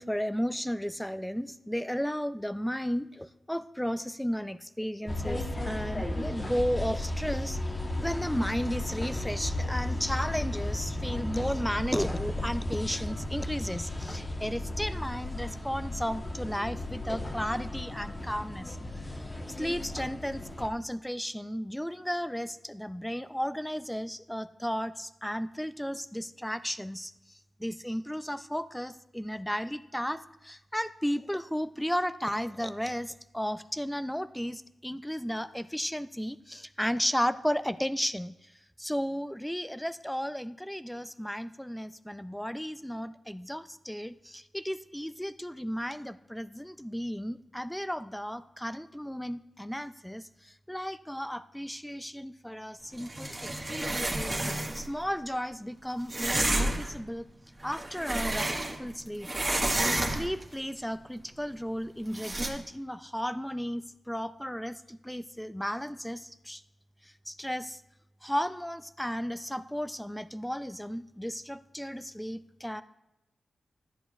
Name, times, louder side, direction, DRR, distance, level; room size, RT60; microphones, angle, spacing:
voice 1, 0.0-7.6 8.0-38.5 38.8-54.4 54.7-57.3 57.6-58.5 58.8-59.3 60.0-66.6 67.0-67.8 68.2-72.8, equal, 5° left, 13 dB, 0.4 m, -34 dB
sound 1, 5.1-20.7, left 1 dB, 25° left, 1.1 m, -34 dB
sound 2, 53.0-54.9 56.1-57.0 57.6-58.9 59.2-60.4 62.1-62.5, right 1 dB, 25° right, 1.4 m, -30 dB
13.0 x 10.0 x 2.4 m, 0.89 s
wide cardioid pair, 90°, 0 cm